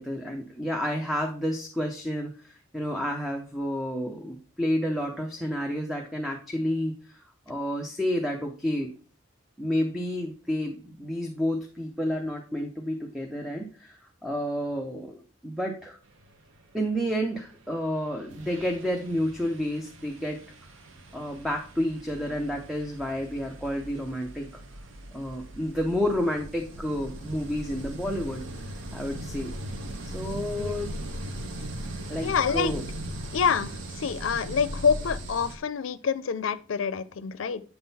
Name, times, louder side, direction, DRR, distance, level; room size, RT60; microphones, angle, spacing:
voice 1, 0.0-8.9 9.6-16.0 16.7-20.4 21.1-24.5 25.1-28.4 28.9-29.5 30.0-31.0 32.1-32.9, equal, ahead, 2 dB, 0.7 m, -30 dB
sound 1, 17.8-17.9 18.3-35.6, right 1 dB, 85° right, 0.9 m, -39 dB
voice 2, 32.2-32.8 33.3-33.7 34.0-37.6, left 6 dB, 85° left, 15 dB, 0.5 m, -26 dB
7.9 x 3.8 x 4.1 m, 0.38 s
head